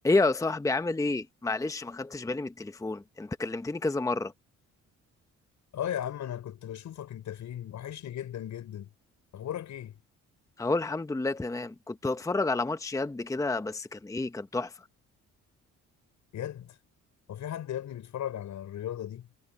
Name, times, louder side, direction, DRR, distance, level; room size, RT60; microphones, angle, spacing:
voice 1, 0.0-4.3 10.6-14.7, left 3 dB, 10° left, 0.8 m, -29 dB
voice 2, 5.7-8.9 9.3-10.0 16.3-16.8 17.3-19.3, left 11 dB, 70° left, 5.4 m, -36 dB
cardioid pair, 90°, 30 cm